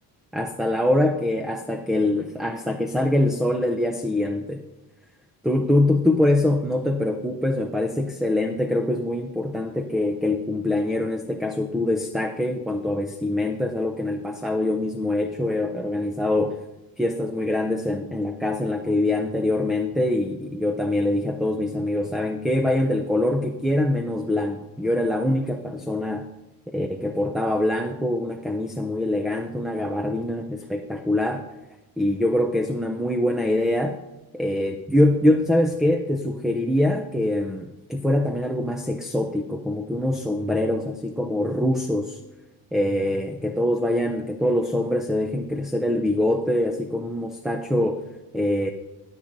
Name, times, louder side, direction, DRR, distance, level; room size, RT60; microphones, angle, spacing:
voice 1, 0.3-4.6 5.4-16.6 17.0-26.3 26.7-31.4 32.0-34.0 34.3-42.2 42.7-48.0 48.3-48.7, left 1 dB, ahead, 5 dB, 0.3 m, -24 dB
21.5 x 7.3 x 2.6 m, 1.0 s
cardioid pair, 155°, 40 cm